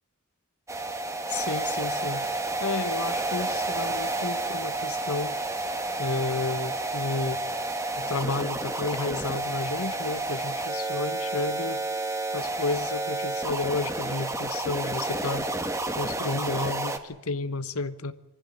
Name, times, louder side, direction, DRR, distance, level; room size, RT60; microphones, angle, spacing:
sound 1, 0.7-17.0, right 2 dB, 15° right, 1.5 m, -30 dB
voice 1, 1.3-2.3 2.6-5.4 6.0-7.4 8.0-11.8 12.3-15.5 16.0-18.1, left 3 dB, 85° left, 1.2 m, -31 dB
24.5 x 15.0 x 9.1 m
head